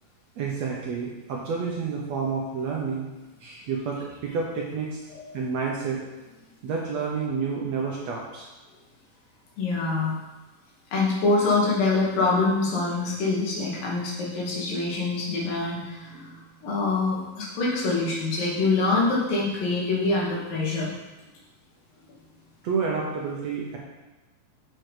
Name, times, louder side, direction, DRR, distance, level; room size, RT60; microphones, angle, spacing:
voice 1, 0.4-3.1 3.4-5.0 5.3-6.0 6.6-8.5 22.6-23.8, right 5 dB, 65° right, -2 dB, 1.8 m, -29 dB
voice 2, 9.6-10.2 10.9-20.9, left 3 dB, 80° left, -4 dB, 3.7 m, -25 dB
7.7 x 6.3 x 5.0 m, 1.1 s
omnidirectional pair, 4.0 m